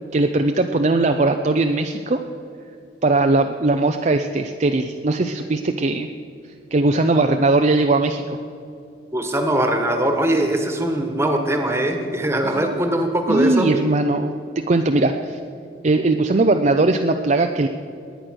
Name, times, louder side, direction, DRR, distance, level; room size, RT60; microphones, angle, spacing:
voice 1, 0.1-2.2 3.0-6.1 6.7-8.4 12.4-12.7 13.3-15.4 15.8-17.7, right 2 dB, 40° right, 5 dB, 0.5 m, -19 dB
voice 2, 9.1-13.7, right 1 dB, 15° right, 4 dB, 1.4 m, -21 dB
20.5 x 9.5 x 6.3 m, 2.6 s
head